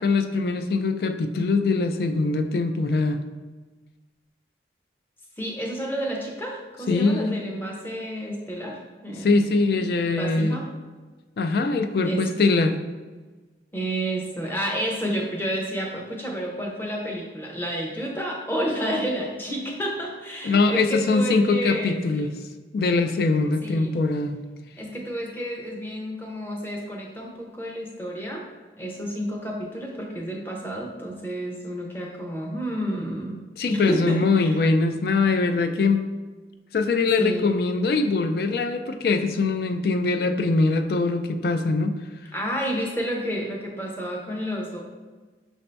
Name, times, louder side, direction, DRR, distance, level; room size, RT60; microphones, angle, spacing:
voice 1, 0.0-3.2 6.9-7.4 9.2-10.6 11.4-12.8 20.4-22.3 22.7-24.4 33.6-36.0 36.7-42.0, left 3 dB, 60° left, 7 dB, 0.3 m, -22 dB
voice 2, 5.4-10.7 12.0-12.2 13.7-22.3 23.6-23.9 24.8-28.5 28.8-33.4 33.7-34.6 37.2-37.5 42.3-44.8, right 1 dB, 10° left, -1 dB, 0.6 m, -30 dB
5.9 x 2.7 x 3.3 m, 1.3 s
head